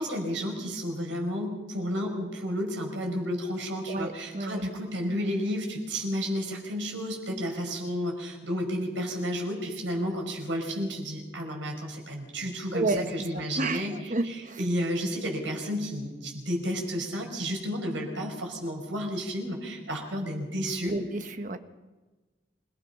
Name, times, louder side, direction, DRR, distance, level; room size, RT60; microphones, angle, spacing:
voice 1, 0.0-21.0, equal, 80° right, 2 dB, 5.6 m, -32 dB
voice 2, 3.9-4.7 12.7-13.1 13.3-14.6 20.8-21.6, right 2 dB, 40° right, 8 dB, 1.2 m, -31 dB
27.0 x 18.5 x 5.8 m, 1.2 s
head